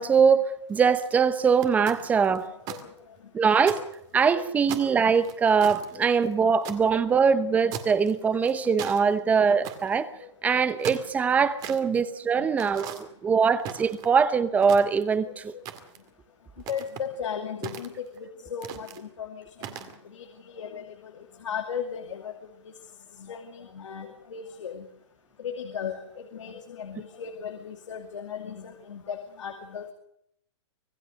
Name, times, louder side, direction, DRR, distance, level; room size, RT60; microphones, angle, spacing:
voice 1, 0.0-2.5 3.3-3.8 4.1-10.1 10.4-15.5, right 6 dB, 10° right, 14 dB, 0.9 m, -22 dB
sound 1, 0.7-1.1 1.6-2.8 3.2-3.3 3.6-4.3 4.7-6.8 7.7-8.1 8.4-9.0 9.6-10.0 10.6-11.8 12.6-13.0 13.6-14.2 14.6-15.2 15.7-16.1 16.6-17.1 17.6-18.2 18.6-19.0 19.6-20.0, right 10 dB, 25° right, 2.1 m, -38 dB
voice 2, 16.7-17.9 18.2-22.3 23.2-24.9 25.4-29.9, left 7 dB, 85° left, 5 dB, 2.5 m, -37 dB
25.5 x 18.0 x 6.4 m, 0.73 s
hypercardioid pair, 160°, 15 cm